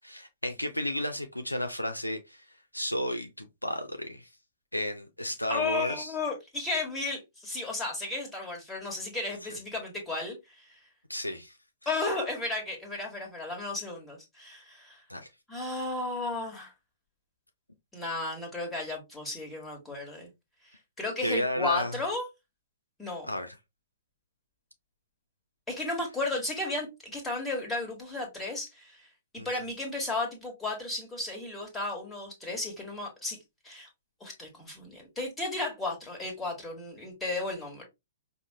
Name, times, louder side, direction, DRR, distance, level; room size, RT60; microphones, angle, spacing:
voice 1, 0.0-4.3 4.7-6.1 11.1-11.6 15.1-15.3 21.2-22.0 23.3-23.5 29.4-29.5, left 1 dB, 85° left, 0.5 m, -33 dB
voice 2, 5.5-10.8 11.8-15.0 15.5-16.7 17.9-20.3 21.0-22.3 23.0-23.3 25.7-33.4 33.6-33.9 34.2-37.8, left 2 dB, 10° left, 1.4 m, -34 dB
5.0 x 2.1 x 2.8 m
figure-of-eight pair, 115°, 0 cm